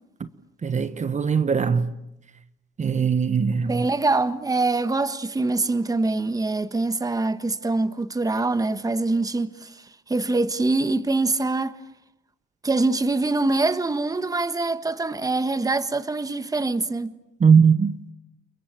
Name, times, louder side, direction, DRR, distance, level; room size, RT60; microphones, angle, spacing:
voice 1, 0.6-1.9 2.8-3.9 17.4-17.9, right 6 dB, 35° right, 1.3 m, -20 dB
voice 2, 3.7-11.7 12.6-17.1, right 3 dB, 20° right, 1.4 m, -24 dB
30.0 x 22.5 x 9.0 m
cardioid pair, 90°, 20 cm